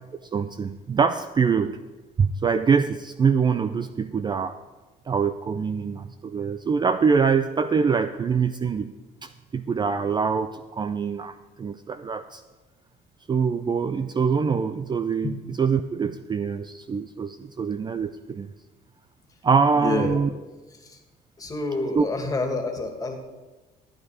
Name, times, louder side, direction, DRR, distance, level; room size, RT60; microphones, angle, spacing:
voice 1, 0.3-1.8 2.2-4.6 5.1-8.9 9.2-12.4 13.3-18.5 19.4-20.3 21.9-22.1, right 5 dB, 25° right, 11 dB, 0.4 m, -24 dB
voice 2, 19.8-20.2 20.8-21.0 21.4-23.1, left 3 dB, 20° left, 3 dB, 2.1 m, -28 dB
13.5 x 9.0 x 4.9 m, 1.2 s
cardioid pair, 110°, 17 cm